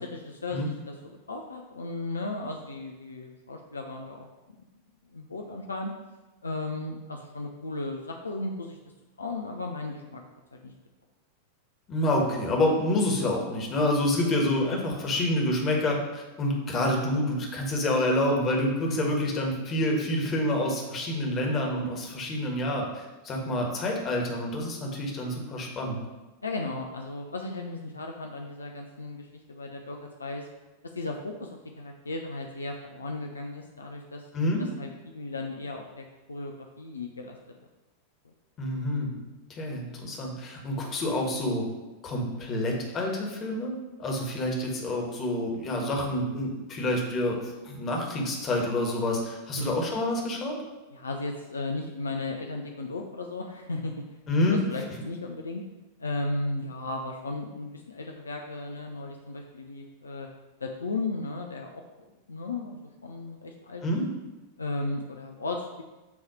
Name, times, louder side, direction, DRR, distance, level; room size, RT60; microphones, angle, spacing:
voice 1, 0.0-4.3 5.1-5.9 6.4-8.8 9.2-10.2 10.5-10.7 18.9-19.0 26.4-30.5 30.9-31.5 31.8-34.2 34.6-37.4 38.2-38.3 49.6-49.7 50.9-53.9 54.4-55.6 56.0-60.3 60.6-61.8 62.3-63.8 64.6-65.8, left 2 dB, 75° left, 2 dB, 0.5 m, -35 dB
voice 2, 11.9-26.0 34.3-34.6 38.6-39.1 39.5-41.6 42.0-50.6 54.3-54.6 63.8-64.0, left 1 dB, 30° left, 0 dB, 1.6 m, -28 dB
8.4 x 3.1 x 4.9 m, 1.1 s
figure-of-eight pair, 90°, 0 cm